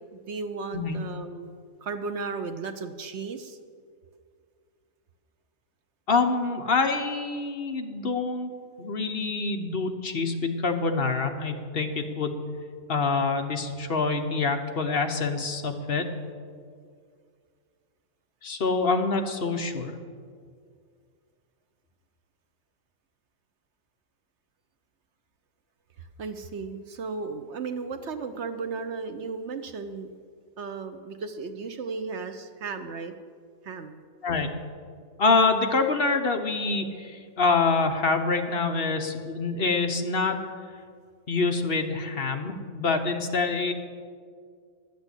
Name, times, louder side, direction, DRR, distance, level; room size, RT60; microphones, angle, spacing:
voice 1, 0.3-1.5 1.8-3.6 26.0-30.1 30.6-33.1 33.6-33.9, right 4 dB, 60° right, 8 dB, 1.0 m, -35 dB
voice 2, 6.1-8.5 8.8-12.3 12.9-16.1 18.4-19.9 34.2-34.5 35.2-40.4 41.3-43.7, left 4 dB, 45° left, 5 dB, 1.1 m, -26 dB
11.5 x 8.3 x 8.1 m, 2.1 s
omnidirectional pair, 1.5 m